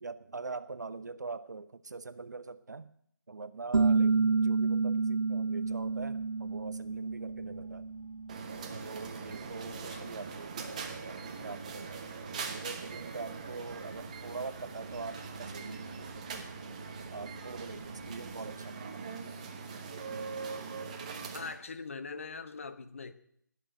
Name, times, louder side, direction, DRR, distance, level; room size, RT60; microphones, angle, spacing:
voice 1, 0.0-2.9 3.3-4.2 4.4-7.8 8.8-12.1 12.3-16.7 17.1-19.0, right 4 dB, 55° right, 1.1 m, -43 dB
sound 1, 3.7-9.1, right 4 dB, 80° right, 0.6 m, -30 dB
voice 2, 4.1-4.5 7.4-7.6 9.7-10.2 21.3-23.1, left 4 dB, 40° left, 1.2 m, -43 dB
sound 2, 5.6-18.6, left 1 dB, 65° left, 6.0 m, -57 dB
sound 3, 8.3-21.6, right 5 dB, 20° right, 1.3 m, -42 dB
19.5 x 6.7 x 9.1 m
figure-of-eight pair, 170°, 11 cm